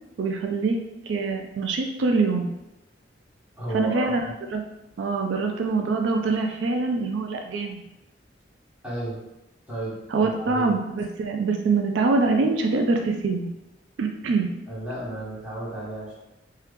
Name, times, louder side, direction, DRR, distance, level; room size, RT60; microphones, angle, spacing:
voice 1, 0.2-0.8 1.1-2.5 3.7-4.3 4.5-4.6 5.0-7.8 10.1-13.5 14.0-14.5, right 3 dB, 80° right, 4 dB, 0.3 m, -24 dB
voice 2, 3.6-4.2 8.8-9.2 9.7-10.7 14.7-16.1, right 1 dB, 5° right, -9 dB, 1.1 m, -33 dB
2.9 x 2.3 x 3.4 m, 0.92 s
head